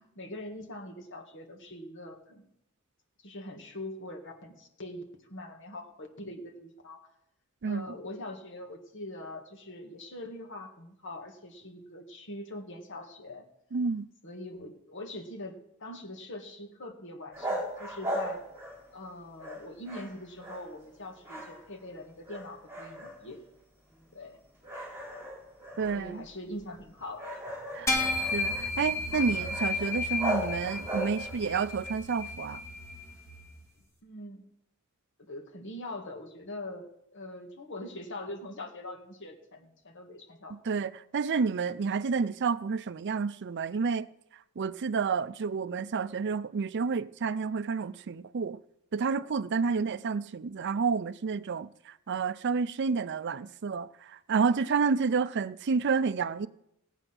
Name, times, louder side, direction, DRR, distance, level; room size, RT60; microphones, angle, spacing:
voice 1, 0.0-2.5 3.2-7.1 7.6-13.4 14.2-18.4 18.9-23.4 24.1-24.4 25.8-27.4 34.0-34.4 35.2-40.6 49.6-50.0, left 1 dB, 60° left, 2.1 m, -43 dB
voice 2, 13.7-14.1 25.8-26.2 27.7-28.0 28.3-32.6 40.7-44.1 44.6-48.6 48.9-51.7 52.1-56.5, right 5 dB, 55° right, 0.5 m, -30 dB
sound 1, 17.3-19.1 19.4-20.9 21.2-21.9 22.2-23.4 23.9-24.0 24.6-31.5, right 1 dB, 10° right, 4.7 m, -38 dB
sound 2, 27.9-33.5, left 2 dB, 15° left, 2.2 m, -33 dB
17.0 x 8.9 x 6.0 m
head